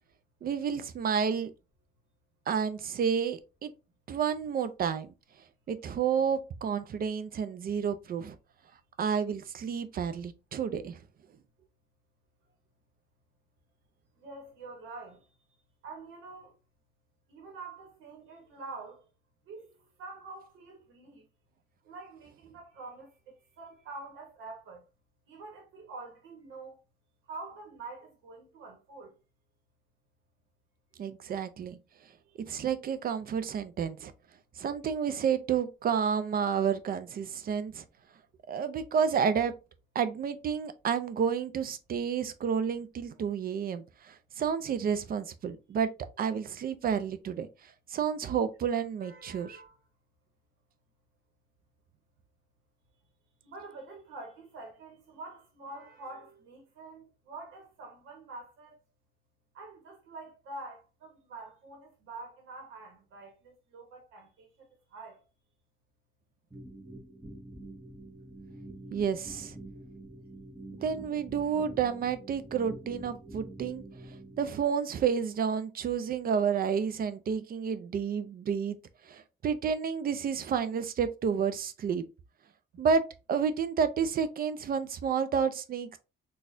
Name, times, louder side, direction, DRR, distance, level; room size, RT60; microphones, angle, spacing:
voice 1, 0.4-1.5 2.5-3.7 4.1-5.1 5.7-8.4 9.0-11.0 31.0-31.8 32.5-34.1 34.6-37.8 38.5-39.5 39.9-45.9 46.2-47.5 47.9-49.6 68.9-69.6 70.8-73.8 74.4-78.8 79.1-82.0 82.8-83.0 83.3-86.0, right 7 dB, 50° right, 0.4 m, -30 dB
voice 2, 14.2-15.2 15.8-16.5 17.3-19.0 19.5-21.2 21.8-24.8 25.3-26.8 27.3-29.1 32.2-32.4 49.0-49.8 53.4-58.8 59.5-64.5 64.9-65.2, right 3 dB, 85° right, 1.1 m, -46 dB
sound 1, 66.5-74.5, right 1 dB, 10° right, 0.8 m, -46 dB
4.1 x 2.4 x 2.5 m
cardioid pair, 90°, 20 cm